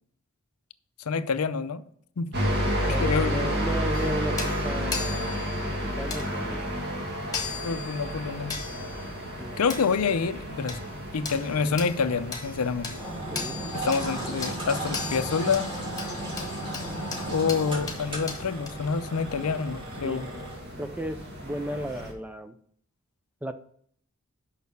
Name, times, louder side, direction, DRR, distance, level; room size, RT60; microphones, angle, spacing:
voice 1, 1.0-1.8 2.2-2.3 2.9-3.5 7.6-8.6 9.6-10.8 11.1-12.9 13.7-15.7 17.3-20.3, left 5 dB, 85° left, 0.5 m, -27 dB
sound 1, 2.3-22.1, equal, 50° right, 1.8 m, -33 dB
voice 2, 2.9-5.4 5.7-6.8 9.4-9.6 13.3-13.6 20.0-20.2 20.8-22.5 23.4-23.5, equal, 5° right, 0.4 m, -35 dB
sound 2, 3.9-18.7, left 5 dB, 15° left, 1.3 m, -39 dB
Engine, 13.0-20.5, right 1 dB, 25° right, 3.3 m, -35 dB
6.4 x 5.7 x 6.8 m
head